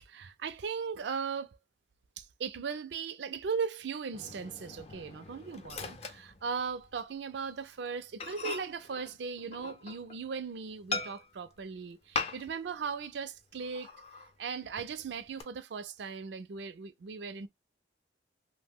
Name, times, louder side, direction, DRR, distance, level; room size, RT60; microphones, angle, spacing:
voice 1, 0.0-1.6 2.2-13.9 14.4-17.5, right 5 dB, 75° right, 0.4 m, -38 dB
Microwave oven, 4.1-7.0 7.3-7.5 7.9-8.0 8.2-10.3 10.9-11.5 12.1-12.7 13.0-13.1 13.6-14.3 14.8-15.4, left 3 dB, 35° left, 0.4 m, -40 dB
2.7 x 2.1 x 3.4 m
head